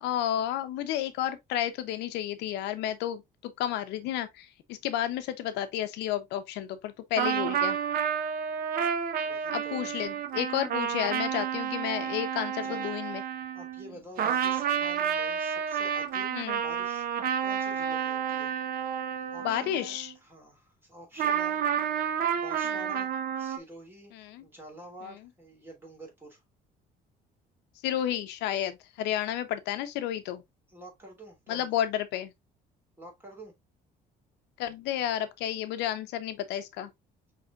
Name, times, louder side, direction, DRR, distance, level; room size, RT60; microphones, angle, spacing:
voice 1, 0.0-7.8 9.5-13.2 16.3-16.6 19.4-20.1 24.1-24.4 27.8-30.4 31.5-32.3 34.6-36.9, left 11 dB, 85° left, 0.7 m, -31 dB
sound 1, 7.2-13.9 14.2-20.1 21.2-23.6, right 8 dB, 60° right, 0.8 m, -30 dB
voice 2, 9.2-9.9 12.6-12.9 13.5-17.1 17.4-18.5 19.3-21.6 22.3-24.2 24.4-26.4 30.7-31.7 33.0-33.5, right 1 dB, 10° right, 2.6 m, -48 dB
5.7 x 3.3 x 2.3 m
cardioid pair, 110°, 17 cm